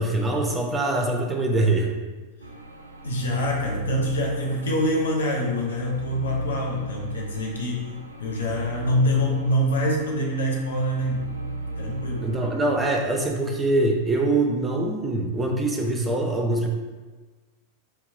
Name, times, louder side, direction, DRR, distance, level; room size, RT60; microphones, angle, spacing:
voice 1, 0.0-1.9 12.2-16.7, right 2 dB, 15° right, 1 dB, 0.6 m, -23 dB
sound 1, 2.4-13.2, right 1 dB, 80° right, 0.3 m, -35 dB
voice 2, 3.0-11.3 11.8-12.3, equal, 65° left, -2 dB, 0.6 m, -25 dB
4.4 x 2.9 x 2.5 m, 1.3 s
figure-of-eight pair, 90°, 0 cm